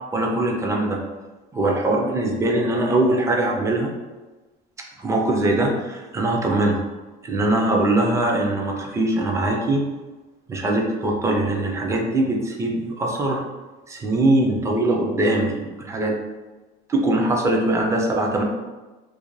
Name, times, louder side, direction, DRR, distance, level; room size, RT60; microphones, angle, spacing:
voice 1, 0.1-1.0 1.5-3.9 5.0-6.8 7.2-9.8 10.5-13.4 13.9-16.2 16.9-18.4, right 1 dB, 15° right, 1 dB, 0.4 m, -22 dB
2.4 x 2.1 x 3.0 m, 1.2 s
cardioid pair, 130°, 19 cm